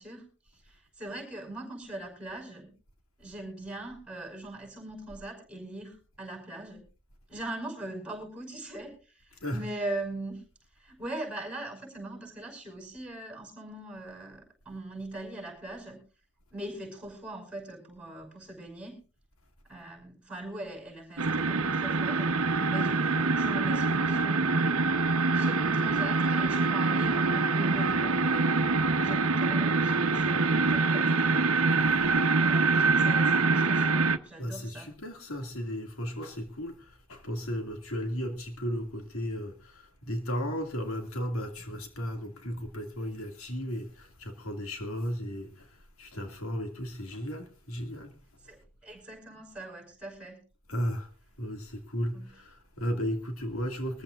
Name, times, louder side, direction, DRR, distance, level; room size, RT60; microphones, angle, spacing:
voice 1, 0.0-2.7 3.2-6.9 7.3-10.4 10.8-16.0 16.5-19.0 19.7-22.3 22.7-24.9 25.3-28.6 29.0-34.9 48.4-50.4 52.1-52.4, right 1 dB, 5° right, 5.3 m, -41 dB
sound 1, 21.2-34.2, right 3 dB, 80° right, 1.0 m, -25 dB
voice 2, 34.4-36.8 37.1-45.5 46.0-48.1 50.7-51.1 51.4-54.0, equal, 75° left, 2.2 m, -35 dB
22.5 x 14.5 x 2.5 m
head